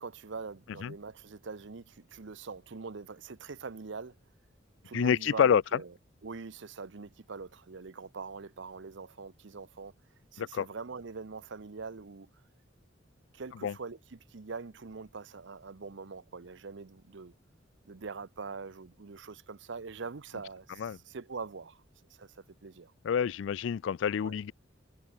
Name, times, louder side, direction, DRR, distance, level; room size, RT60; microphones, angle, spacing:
voice 1, 0.0-4.2 4.8-5.9 6.2-9.9 10.3-12.3 13.3-17.3 17.8-21.8 22.1-23.3 24.2-24.4, right 4 dB, 65° right, 0.7 m, -43 dB
voice 2, 4.9-5.8 10.4-10.7 13.6-13.7 20.8-21.0 23.0-24.5, left 7 dB, 65° left, 0.3 m, -27 dB
head